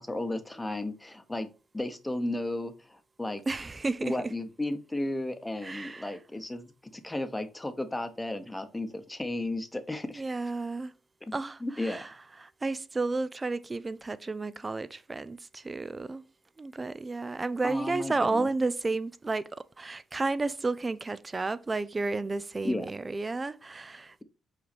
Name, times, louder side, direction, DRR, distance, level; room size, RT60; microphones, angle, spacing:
voice 1, 0.0-1.5 1.7-3.4 4.0-10.2 11.2-12.0 17.6-18.5 22.6-22.9, left 1 dB, 10° left, 1.0 m, -34 dB
voice 2, 3.5-4.1 5.6-6.1 10.2-10.9 11.3-12.1 12.4-16.2 16.6-19.5 19.8-24.2, right 3 dB, 25° right, 0.5 m, -32 dB
5.8 x 4.7 x 4.2 m
cardioid pair, 90°, 0 cm